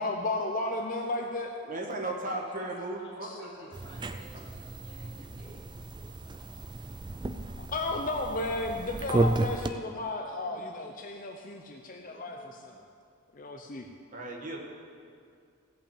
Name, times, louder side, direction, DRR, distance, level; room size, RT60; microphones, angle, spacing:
voice 1, 0.0-1.5 3.2-3.4 7.7-12.8 13.3-13.9, left 2 dB, 40° left, 3 dB, 0.6 m, -33 dB
voice 2, 1.6-3.7 14.1-14.6, right 2 dB, 35° right, 0 dB, 1.6 m, -36 dB
voice 3, 2.2-6.9 10.0-10.6 12.1-12.5, left 1 dB, 20° left, -10 dB, 2.6 m, -55 dB
sound 1, 3.7-9.7, right 2 dB, 20° right, 0.4 m, -33 dB
16.0 x 5.7 x 8.7 m, 2.3 s
head